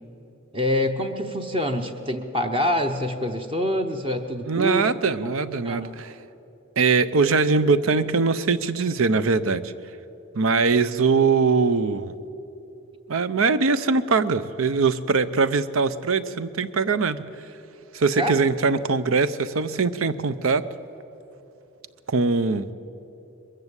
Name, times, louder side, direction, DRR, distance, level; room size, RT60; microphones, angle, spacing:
voice 1, 0.5-5.0 5.6-5.9 18.2-18.4, left 1 dB, 25° right, 5 dB, 0.9 m, -26 dB
voice 2, 4.5-6.1 6.8-9.7 10.3-12.1 13.1-17.2 17.9-20.7 22.1-22.7, right 4 dB, 75° right, 14 dB, 0.7 m, -22 dB
22.0 x 14.5 x 8.2 m, 2.9 s
head